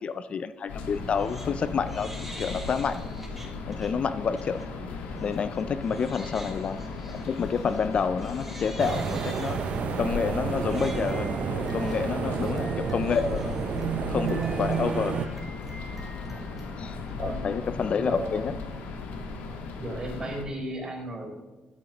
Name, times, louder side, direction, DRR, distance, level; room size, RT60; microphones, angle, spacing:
voice 1, 0.0-3.0 3.7-4.6 5.2-6.9 7.3-9.6 10.0-13.5 14.0-15.2 16.8-18.5, left 6 dB, 45° left, 13 dB, 0.4 m, -29 dB
sound 1, 0.7-20.4, left 4 dB, 80° left, 1.4 m, -37 dB
Crying sobbing, 0.9-1.5 1.8-3.9 4.4-4.6 5.2-17.1, right 1 dB, 5° right, 2.3 m, -47 dB
sound 2, 8.8-15.3, right 8 dB, 55° right, 0.5 m, -30 dB
voice 2, 18.0-18.5 19.8-21.3, right 1 dB, 30° right, 0 dB, 3.8 m, -36 dB
14.0 x 8.4 x 2.9 m, 1.2 s
cardioid pair, 95°, 3 cm